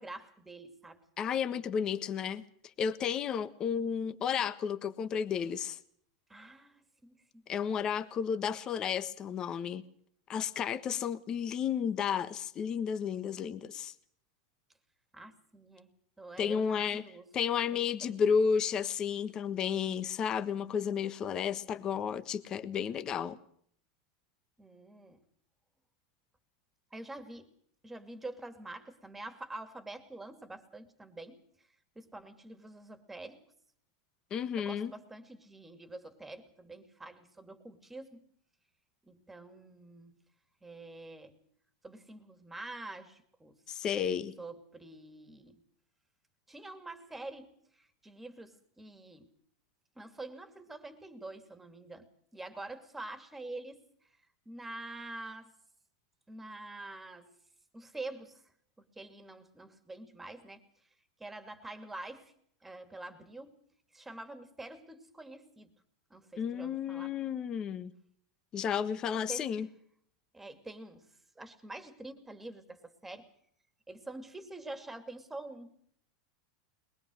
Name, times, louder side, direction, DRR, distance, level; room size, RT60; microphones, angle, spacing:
voice 1, 0.0-1.0 6.3-7.2 15.1-15.9 16.2-17.3 17.7-18.2 24.6-25.2 26.9-27.5 27.8-31.7 32.0-33.4 34.6-38.2 39.0-40.1 40.6-41.4 41.8-43.6 44.4-45.6 46.5-49.3 50.0-52.1 52.3-53.8 54.5-55.5 56.3-57.3 57.7-58.4 59.0-60.6 61.2-62.3 62.6-63.6 63.9-65.7 66.1-67.1 69.3-69.5 70.3-71.1 71.4-73.3 73.9-75.8, right 2 dB, 5° right, 9 dB, 2.5 m, -46 dB
voice 2, 1.2-2.4 2.8-5.8 7.5-9.8 10.3-13.9 16.4-17.0 17.3-23.4 34.3-34.9 43.7-44.3 66.4-67.9 68.5-69.7, left 7 dB, 25° left, 12 dB, 1.4 m, -32 dB
22.0 x 21.0 x 6.3 m, 0.64 s
supercardioid pair, 155°, 3 cm